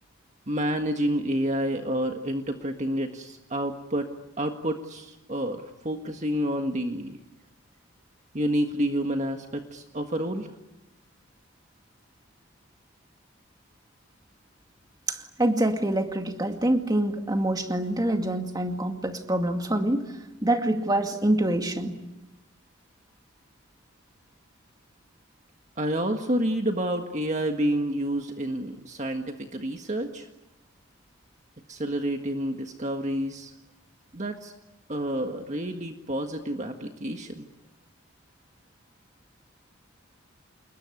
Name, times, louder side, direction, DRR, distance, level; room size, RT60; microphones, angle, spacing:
voice 1, 0.5-4.1 4.4-7.2 8.3-10.5 25.8-30.3 31.7-33.5 34.1-34.5 34.9-37.4, right 1 dB, 35° right, 4 dB, 1.7 m, -29 dB
voice 2, 15.1-20.1 20.4-22.0, right 1 dB, 20° right, 5 dB, 2.2 m, -25 dB
28.5 x 21.5 x 9.8 m, 0.97 s
head